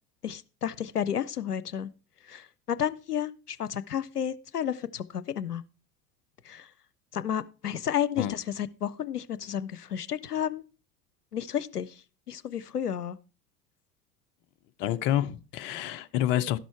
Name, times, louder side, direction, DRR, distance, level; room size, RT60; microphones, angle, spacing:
voice 1, 0.2-1.9 2.3-5.6 6.5-6.7 7.1-10.6 11.3-11.9 12.3-13.2, left 9 dB, 90° left, 0.5 m, -32 dB
voice 2, 14.8-16.6, left 12 dB, 25° left, 0.4 m, -28 dB
13.0 x 6.1 x 4.5 m
figure-of-eight pair, 75°, 46 cm